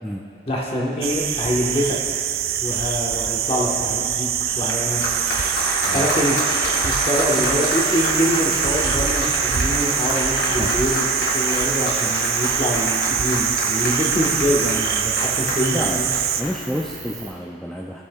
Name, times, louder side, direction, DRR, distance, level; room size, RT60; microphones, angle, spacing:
voice 1, 0.5-2.0 2.6-4.3 4.5-5.0 5.9-6.4 6.8-16.1, equal, 35° left, -3 dB, 1.4 m, -25 dB
sound 1, 1.0-16.4, right 9 dB, 60° right, 0.4 m, -24 dB
Applause, 4.4-17.0, left 1 dB, 75° left, 2.2 m, -27 dB
sound 2, 7.7-17.3, right 5 dB, 40° right, 1.3 m, -40 dB
voice 2, 10.4-10.7 15.7-16.1 16.4-18.0, equal, 5° left, -3 dB, 0.4 m, -29 dB
17.5 x 7.1 x 2.4 m, 2.5 s
head